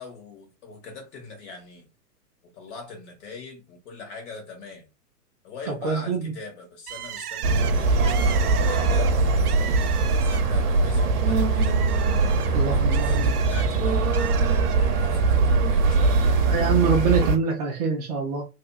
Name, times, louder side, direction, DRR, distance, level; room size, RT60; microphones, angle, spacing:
voice 1, 0.0-1.9 2.4-4.9 5.4-16.4, left 4 dB, 45° left, 1.7 m, -42 dB
voice 2, 5.7-6.2 12.5-13.3 16.5-18.5, right 5 dB, 25° right, 0.5 m, -24 dB
Bird, 6.9-10.7 11.1-13.7 14.1-14.8, right 10 dB, 70° right, 0.6 m, -37 dB
sound 1, 7.4-17.4, right 3 dB, 55° right, 0.9 m, -21 dB
3.3 x 2.7 x 2.3 m
hypercardioid pair, 125°, 47 cm